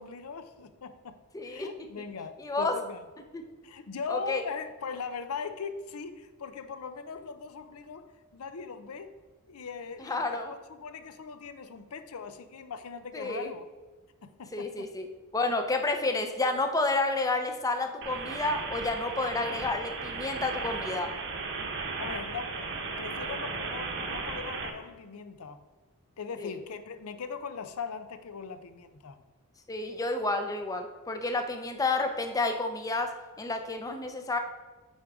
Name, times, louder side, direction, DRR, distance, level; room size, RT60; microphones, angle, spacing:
voice 1, 0.0-1.2 1.4-3.0 3.6-8.1 8.3-9.1 9.5-13.6 14.2-14.9 22.0-25.6 26.2-29.2, left 5 dB, 75° left, 10 dB, 0.6 m, -40 dB
voice 2, 1.3-1.7 2.4-2.7 3.3-3.4 4.1-4.4 10.0-10.6 13.1-13.5 14.5-15.1 15.3-21.1 26.4-26.5 29.7-33.1 33.4-34.4, left 2 dB, 15° left, 5 dB, 0.6 m, -30 dB
sound 1, 18.0-24.7, right 4 dB, 55° right, 0.9 m, -36 dB
9.4 x 3.8 x 4.8 m, 1.3 s
head